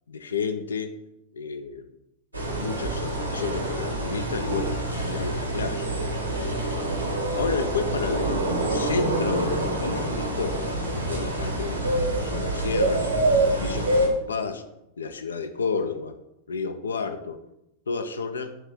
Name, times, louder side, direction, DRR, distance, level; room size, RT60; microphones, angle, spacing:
voice 1, 0.1-0.9 1.3-1.9 2.5-5.9 7.3-13.1 13.6-14.6 15.0-16.2 16.5-17.4 17.9-18.6, left 4 dB, 70° left, 9 dB, 0.5 m, -31 dB
sound 1, 2.3-14.1, right 1 dB, 85° right, 1.5 m, -26 dB
7.3 x 3.2 x 5.3 m, 0.84 s
figure-of-eight pair, 90°, 0 cm